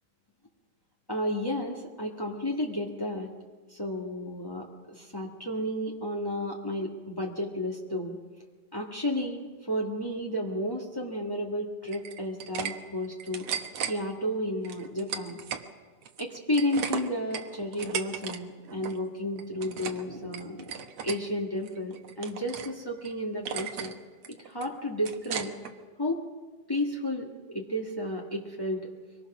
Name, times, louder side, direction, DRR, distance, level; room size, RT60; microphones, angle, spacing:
voice 1, 1.1-3.3 3.7-8.2 8.7-13.5 13.8-15.4 16.2-23.9 24.4-25.5 26.0-26.2 26.7-28.9, left 1 dB, 20° left, -2 dB, 0.5 m, -32 dB
sound 1, 11.9-12.7 13.0-13.9 14.6-15.7 16.0-18.4 18.6-19.0 19.4-20.0 20.3-21.2 21.6-22.7 23.0-23.1 23.5-23.9 24.2-25.7, right 8 dB, 60° right, 1.9 m, -36 dB
24.5 x 19.5 x 6.0 m, 1.4 s
omnidirectional pair, 3.6 m